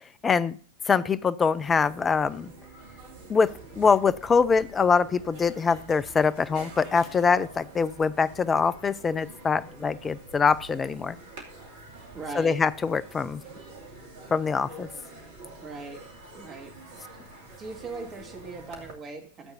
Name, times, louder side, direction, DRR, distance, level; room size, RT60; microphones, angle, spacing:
voice 1, 0.2-0.6 0.9-2.5 3.3-3.5 3.8-11.2 12.3-13.4 14.3-14.9, left 5 dB, 20° left, 15 dB, 0.5 m, -24 dB
sound 1, 1.5-18.9, right 2 dB, 55° right, 2.5 m, -47 dB
voice 2, 12.1-12.6 15.6-16.0 16.3-16.8 17.6-19.5, right 3 dB, 25° right, 2 dB, 2.5 m, -39 dB
13.5 x 8.0 x 2.7 m, 0.43 s
figure-of-eight pair, 90°, 0 cm